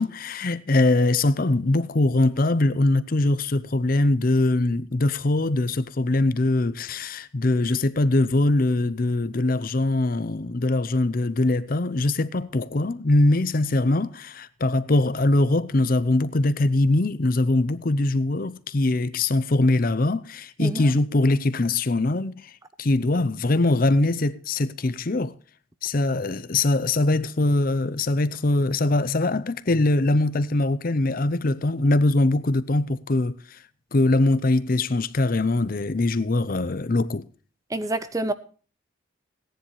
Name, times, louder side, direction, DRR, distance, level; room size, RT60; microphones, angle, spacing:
voice 1, 0.0-22.5 22.8-25.3 25.8-33.6 33.9-37.3, left 2 dB, 45° left, 0.6 m, -22 dB
voice 2, 37.7-38.3, right 2 dB, 15° right, 0.6 m, -27 dB
17.5 x 10.5 x 3.1 m
head